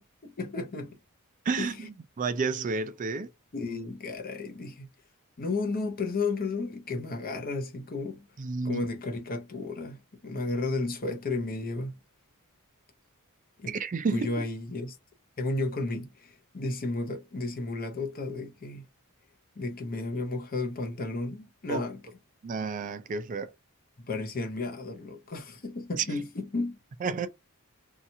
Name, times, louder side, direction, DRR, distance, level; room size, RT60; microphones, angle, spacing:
voice 1, 0.4-1.0 1.6-1.8 3.5-4.9 5.4-8.3 8.6-11.9 13.6-13.7 14.1-14.9 15.4-18.8 19.6-22.0 24.0-26.8, left 3 dB, 40° left, 0.7 m, -33 dB
voice 2, 1.5-3.3 8.4-8.8 13.7-14.3 21.7-21.8 22.4-23.5 26.0-26.1 27.0-27.3, right 4 dB, 35° right, 0.3 m, -31 dB
2.8 x 2.3 x 2.6 m
head